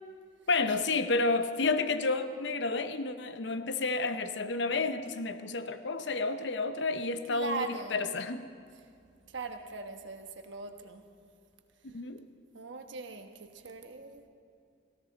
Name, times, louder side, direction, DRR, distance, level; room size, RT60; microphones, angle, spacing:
voice 1, 0.5-8.5 11.8-12.2, left 3 dB, 65° left, 10 dB, 0.7 m, -31 dB
voice 2, 7.3-8.0 9.3-11.0 12.5-14.3, right 3 dB, 75° right, 6 dB, 1.2 m, -40 dB
18.0 x 17.0 x 4.0 m, 2.4 s
head